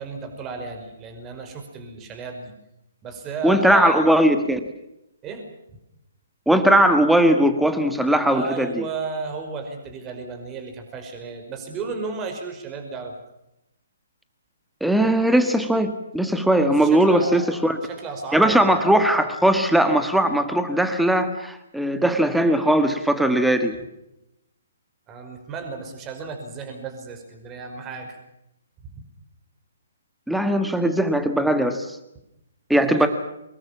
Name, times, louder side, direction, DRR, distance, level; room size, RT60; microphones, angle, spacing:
voice 1, 0.0-2.5 3.0-4.1 5.2-5.5 8.3-13.1 16.7-18.7 25.1-28.2 28.9-29.0 32.7-33.1, right 4 dB, 20° right, 6 dB, 5.4 m, -34 dB
voice 2, 3.4-4.6 6.5-8.8 14.8-17.8 18.3-23.8 30.3-32.0 32.7-33.1, right 1 dB, ahead, 8 dB, 1.6 m, -19 dB
24.5 x 21.0 x 7.3 m, 0.85 s
figure-of-eight pair, 130°, 0 cm